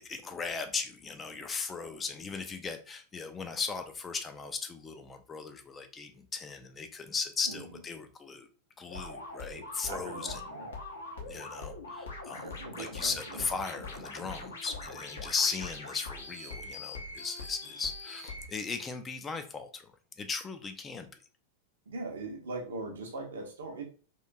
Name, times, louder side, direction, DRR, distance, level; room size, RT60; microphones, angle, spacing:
voice 1, 0.0-8.5 8.8-10.4 11.3-12.5 12.8-19.9 20.2-21.1, left 5 dB, 20° left, 7 dB, 0.3 m, -37 dB
voice 2, 7.5-7.8 9.9-10.7 12.3-13.5 21.9-23.8, right 3 dB, 65° right, 2 dB, 0.6 m, -40 dB
sound 1, 8.9-18.5, left 2 dB, 70° left, 0.7 m, -42 dB
2.9 x 2.5 x 2.2 m, 0.38 s
figure-of-eight pair, 90°, 0 cm